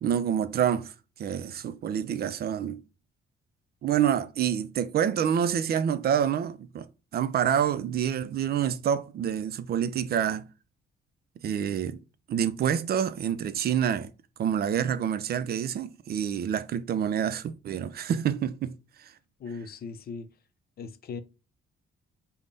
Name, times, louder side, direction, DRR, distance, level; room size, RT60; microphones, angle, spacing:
voice 1, 0.0-0.9 1.2-2.8 3.8-6.9 7.1-10.5 11.4-12.0 12.3-14.1 14.4-19.1, right 9 dB, 50° right, 0.4 m, -27 dB
voice 2, 19.4-20.3 20.8-21.2, left 4 dB, 50° left, 0.5 m, -38 dB
3.3 x 2.1 x 3.9 m
cardioid pair, 90°, 20 cm